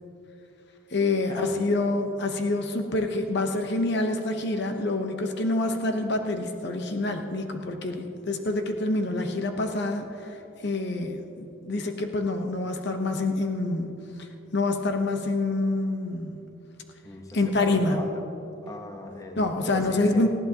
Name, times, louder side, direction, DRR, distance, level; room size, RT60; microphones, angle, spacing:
voice 1, 0.9-13.9 14.2-14.3 14.5-16.4 17.3-18.0 19.4-20.3, left 2 dB, 60° left, 5 dB, 0.9 m, -27 dB
voice 2, 17.0-18.2 18.6-20.3, left 1 dB, 20° left, 3 dB, 0.9 m, -39 dB
19.5 x 15.0 x 2.9 m, 3.0 s
head